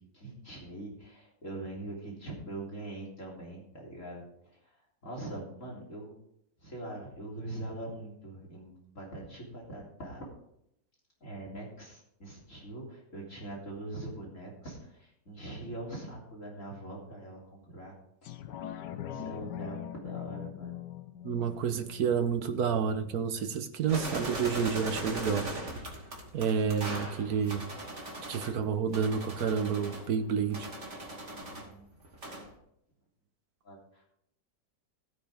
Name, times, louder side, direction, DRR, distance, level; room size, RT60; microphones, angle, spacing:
voice 1, 0.0-4.8 5.0-6.1 6.6-10.3 11.2-17.9 19.1-20.8 31.3-31.9 33.6-34.0, right 2 dB, 40° left, -2 dB, 3.8 m, -43 dB
sound 1, 18.2-23.3 23.7-23.8, left 11 dB, 70° left, 1.4 m, -42 dB
voice 2, 21.2-25.5 26.3-27.6 28.3-30.7, right 7 dB, 60° right, 7 dB, 1.4 m, -29 dB
sound 2, 23.9-28.5 28.9-31.7 32.0-32.5, right 1 dB, 40° right, 2.7 m, -39 dB
15.5 x 9.2 x 3.6 m, 0.75 s
omnidirectional pair, 2.0 m